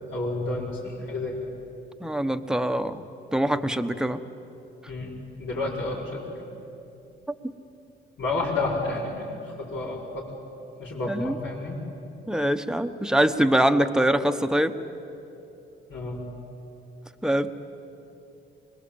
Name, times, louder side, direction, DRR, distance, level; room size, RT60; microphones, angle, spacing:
voice 1, 0.1-1.4 4.9-6.4 8.2-10.3 10.8-11.8 15.9-16.2, left 2 dB, 80° left, -10 dB, 5.6 m, -30 dB
voice 2, 2.0-3.0 3.3-4.2 7.4-7.5 11.1-11.4 12.3-14.8 17.2-17.5, right 1 dB, 5° right, 8 dB, 1.1 m, -23 dB
25.5 x 21.0 x 8.7 m, 2.9 s
cardioid pair, 90°, 20 cm